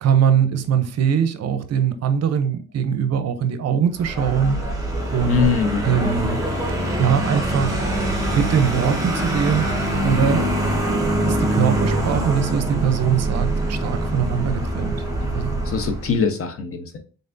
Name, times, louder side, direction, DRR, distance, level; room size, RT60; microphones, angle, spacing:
voice 1, 0.0-4.8 5.1-5.5 5.8-6.4 7.0-7.8 8.3-9.7 10.0-10.5 11.2-15.0 15.3-15.6, right 8 dB, 55° right, 0.6 m, -21 dB
Vehicle, 3.9-16.2, right 1 dB, 10° right, 1.3 m, -24 dB
voice 2, 5.3-6.1 15.6-17.0, left 6 dB, 45° left, 0.9 m, -22 dB
3.9 x 3.4 x 2.6 m
cardioid pair, 90°, 30 cm